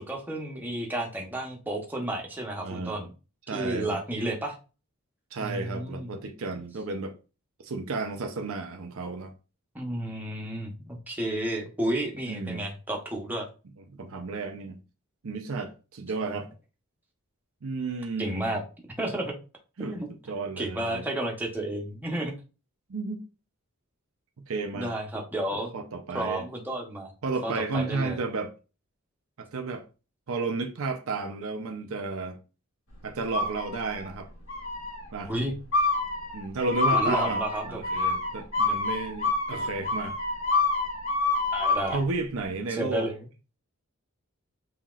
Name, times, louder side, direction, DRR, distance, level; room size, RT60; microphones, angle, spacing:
voice 1, 0.0-3.1 3.5-4.5 5.4-6.1 9.7-13.5 16.3-16.4 18.2-18.6 19.0-19.3 19.8-20.1 20.6-22.3 24.7-25.7 26.1-27.1 27.4-28.2 35.3-35.5 36.9-37.8 41.5-42.0 42.7-43.2, right 1 dB, 10° right, 0.9 m, -31 dB
voice 2, 2.6-3.0 3.5-4.0 5.3-7.2 7.6-9.3 12.3-12.7 13.9-14.8 15.2-16.5 17.6-18.5 19.8-20.0 20.3-21.0 22.9-23.2 24.4-24.9 25.7-26.4 27.2-28.5 29.4-29.8 30.3-32.4 33.0-34.3 35.1-35.3 36.3-40.2 41.9-43.1, right 3 dB, 70° right, 0.6 m, -32 dB
sound 1, 33.3-34.1 34.5-35.0 35.7-42.0, left 3 dB, 65° left, 2.3 m, -27 dB
5.7 x 2.9 x 2.4 m
head